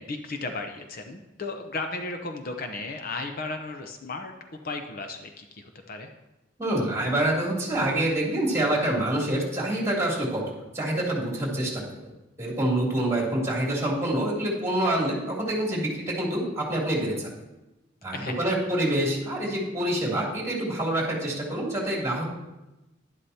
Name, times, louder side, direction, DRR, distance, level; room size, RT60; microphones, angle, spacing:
voice 1, 0.0-4.3 4.6-6.1 18.1-18.5, left 3 dB, 50° left, 5 dB, 0.8 m, -35 dB
voice 2, 6.6-10.4 10.7-12.1 12.4-17.3 18.0-22.3, right 1 dB, 15° right, -3 dB, 2.9 m, -26 dB
11.0 x 11.0 x 2.8 m, 1.0 s
head